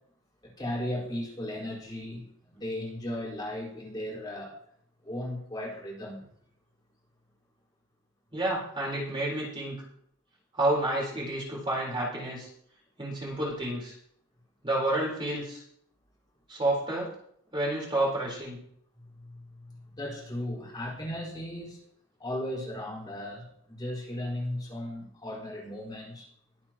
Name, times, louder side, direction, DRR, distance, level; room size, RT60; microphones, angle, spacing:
voice 1, 0.4-4.5 5.0-6.2 19.0-21.8 22.2-26.3, left 1 dB, 20° left, -4 dB, 4.6 m, -36 dB
voice 2, 8.3-9.7 10.5-12.5 13.0-13.9 14.6-15.6 16.5-17.1 17.5-18.6, right 1 dB, 25° right, -4 dB, 4.1 m, -29 dB
22.5 x 8.5 x 3.0 m, 0.67 s
head